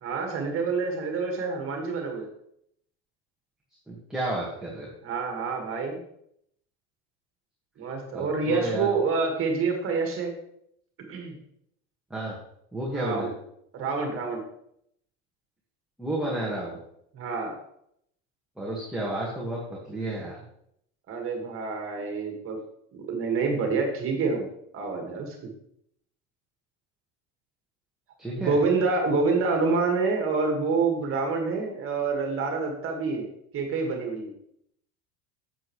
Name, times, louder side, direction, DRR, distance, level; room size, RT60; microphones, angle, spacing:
voice 1, 0.0-2.3 5.0-6.0 7.8-10.3 11.1-11.4 12.9-13.3 13.7-14.4 17.1-17.5 21.1-22.6 22.9-24.5 24.7-25.4 28.4-33.3 33.5-34.3, right 4 dB, 40° right, 3 dB, 2.0 m, -27 dB
voice 2, 3.9-4.9 8.1-9.0 12.1-12.4 12.7-13.3 16.0-16.8 18.6-20.4 28.2-28.6, right 1 dB, ahead, -5 dB, 1.8 m, -31 dB
8.8 x 7.8 x 3.2 m, 0.72 s
supercardioid pair, 125°, 34 cm